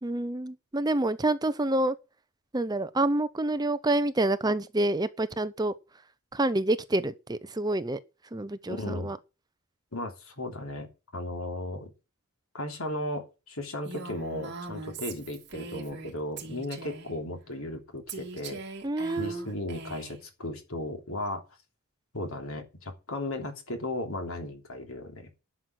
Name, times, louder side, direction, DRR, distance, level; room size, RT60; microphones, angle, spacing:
voice 1, 0.0-1.9 2.5-5.7 6.3-8.0 8.3-9.2 18.8-19.5, right 2 dB, 20° right, 0.6 m, -27 dB
voice 2, 8.7-9.1 9.9-11.9 12.5-18.6 19.2-21.4 22.1-25.3, left 1 dB, 70° left, 3.2 m, -36 dB
Female speech woman speaking, 13.9-16.1 16.4-17.1 18.1-20.2, right 3 dB, 50° right, 2.7 m, -41 dB
11.5 x 6.2 x 8.0 m
head